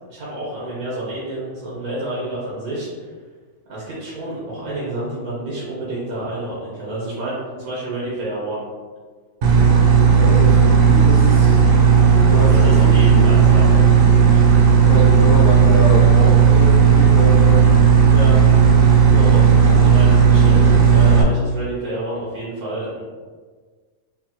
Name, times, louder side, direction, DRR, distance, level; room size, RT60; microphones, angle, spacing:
voice 1, 0.1-3.1 3.7-8.6 12.3-14.8 18.1-18.4 18.7-18.8 19.1-23.0, right 1 dB, 90° right, -8 dB, 1.5 m, -29 dB
sound 1, 9.4-21.2, right 6 dB, 70° right, 1.0 m, -13 dB
voice 2, 10.1-11.6 12.2-13.2 14.9-17.7, equal, 80° left, -16 dB, 2.1 m, -25 dB
5.7 x 2.1 x 2.9 m, 1.5 s
omnidirectional pair, 1.5 m